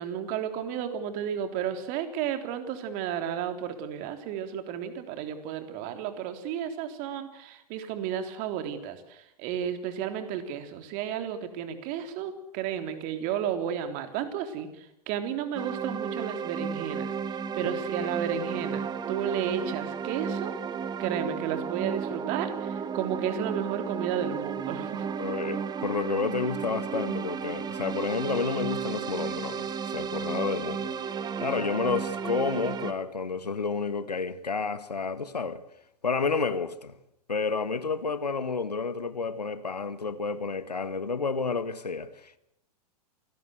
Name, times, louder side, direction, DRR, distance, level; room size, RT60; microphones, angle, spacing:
voice 1, 0.0-14.7 15.1-17.1 17.5-20.5 21.0-25.0, right 9 dB, 45° right, 3.6 m, -32 dB
sound 1, 15.5-32.9, right 6 dB, 20° right, 1.6 m, -33 dB
voice 2, 25.2-30.9 31.4-35.6 36.0-36.9 37.3-42.4, left 4 dB, 85° left, 1.7 m, -30 dB
27.0 x 18.5 x 8.0 m
figure-of-eight pair, 100°, 20 cm